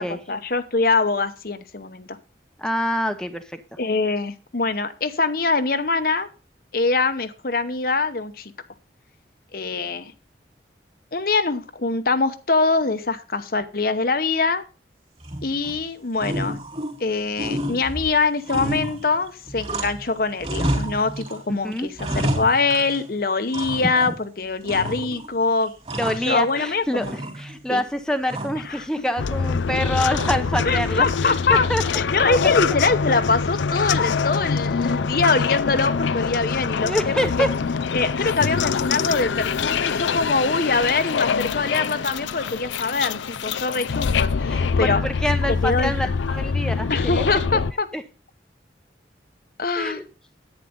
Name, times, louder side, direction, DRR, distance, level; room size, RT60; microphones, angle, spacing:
voice 1, 0.0-2.2 3.8-6.3 6.7-8.5 9.5-10.1 11.1-14.6 15.4-16.6 17.0-25.7 26.3-27.1 27.7-27.8 28.6-28.9 30.6-37.5 37.9-45.0 45.5-46.1 46.9-47.9 49.6-50.0, left 3 dB, 50° left, 10 dB, 0.9 m, -23 dB
voice 2, 2.6-3.6 21.5-21.9 26.0-27.0 27.4-31.8 36.8-37.5 44.5-47.3 47.5-47.6 47.9-48.0 49.8-50.0, equal, 5° left, 7 dB, 0.8 m, -26 dB
sound 1, 15.2-15.8 16.2-17.1 17.4-20.1 20.4-21.4 21.7-23.1 23.5-24.2 24.7-25.3 25.6-26.7 27.0-27.7 28.3-28.7 30.1-30.6, equal, 30° right, 3.1 m, -30 dB
sound 2, 29.2-47.7, left 5 dB, 85° left, 0.5 m, -24 dB
10.5 x 9.2 x 3.8 m, 0.33 s
head